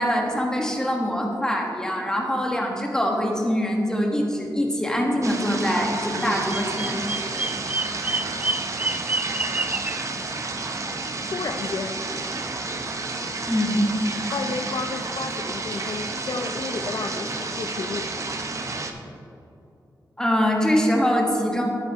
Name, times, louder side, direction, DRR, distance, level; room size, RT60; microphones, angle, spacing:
voice 1, 0.0-7.0 13.5-13.8 20.2-21.6, equal, 10° left, 0 dB, 1.4 m, -23 dB
sound 1, 5.2-18.9, right 3 dB, 45° right, 0.8 m, -31 dB
Bird vocalization bird call bird song, 6.2-10.0, right 2 dB, 20° right, 0.4 m, -29 dB
voice 2, 11.3-12.0 14.3-18.1, left 4 dB, 60° left, 6 dB, 0.4 m, -32 dB
10.5 x 9.3 x 3.0 m, 2.7 s
wide cardioid pair, 110°, 7 cm